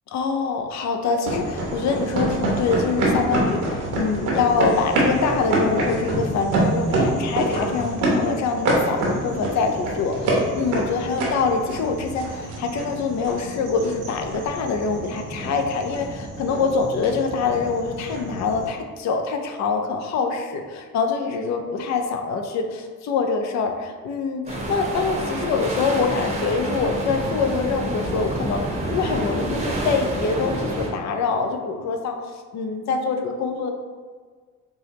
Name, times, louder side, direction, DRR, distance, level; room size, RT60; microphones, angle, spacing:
voice 1, 0.1-33.7, left 4 dB, 65° left, 4 dB, 0.5 m, -25 dB
sound 1, 1.2-18.7, right 2 dB, 90° right, 0.9 m, -26 dB
sound 2, 24.5-30.9, right 1 dB, 20° right, 0.7 m, -28 dB
4.5 x 2.1 x 2.8 m, 1.5 s
cardioid pair, 90°, 30 cm